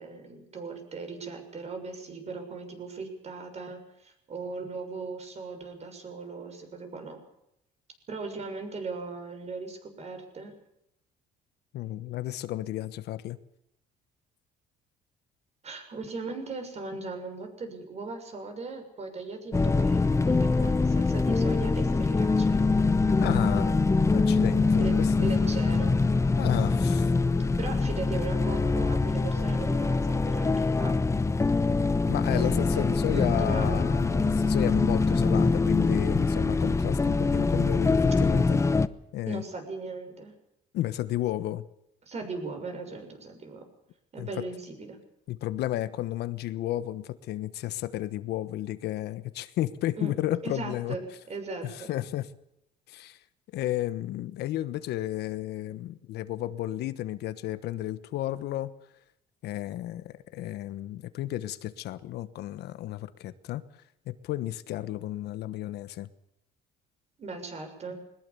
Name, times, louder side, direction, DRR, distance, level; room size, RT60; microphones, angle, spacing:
voice 1, 0.0-7.2 8.1-10.5 15.6-22.6 24.8-25.9 27.6-31.0 32.3-33.9 39.3-40.3 42.0-43.6 44.1-45.0 50.0-50.1 50.4-51.0 51.3-51.9 67.2-68.0, right 3 dB, 40° right, 6 dB, 6.6 m, -38 dB
voice 2, 11.7-13.4 23.2-23.8 24.1-25.3 26.4-27.1 32.1-38.6 39.1-39.4 40.7-41.6 44.2-44.3 45.3-51.0 51.6-52.3 52.9-53.2 53.5-58.7 59.4-63.6 64.1-66.1, left 14 dB, 75° left, 13 dB, 1.3 m, -32 dB
sound 1, 19.5-38.9, left 3 dB, 15° left, 0.9 m, -24 dB
21.5 x 20.5 x 7.1 m, 0.83 s
cardioid pair, 110°, 17 cm